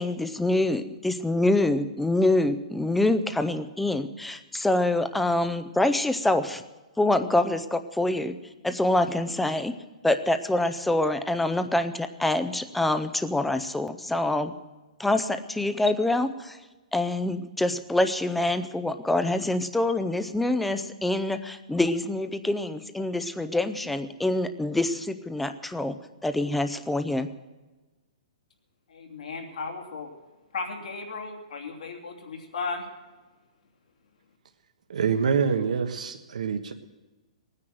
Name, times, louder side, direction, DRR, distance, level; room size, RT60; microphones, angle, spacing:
voice 1, 0.0-6.6 7.0-8.3 8.6-9.7 10.0-14.5 15.0-16.6 16.9-26.0 26.2-27.3, left 2 dB, ahead, 10 dB, 0.5 m, -25 dB
voice 2, 28.9-30.1 30.5-32.8, left 4 dB, 75° left, 1 dB, 2.9 m, -35 dB
voice 3, 34.9-36.7, right 6 dB, 85° right, 6 dB, 1.2 m, -26 dB
19.0 x 9.8 x 7.7 m, 1.2 s
hypercardioid pair, 170°, 4 cm